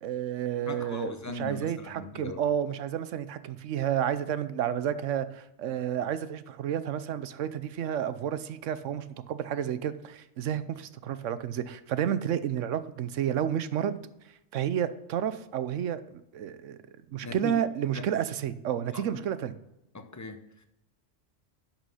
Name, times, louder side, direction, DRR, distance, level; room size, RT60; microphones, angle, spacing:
voice 1, 0.0-14.0 14.5-16.8 17.1-19.5, right 9 dB, 80° right, 13 dB, 1.0 m, -31 dB
voice 2, 0.7-2.4 17.2-17.5 17.9-18.0 18.9-19.2 19.9-20.6, left 3 dB, 15° left, 7 dB, 0.7 m, -39 dB
11.0 x 6.0 x 5.6 m, 0.89 s
omnidirectional pair, 1.3 m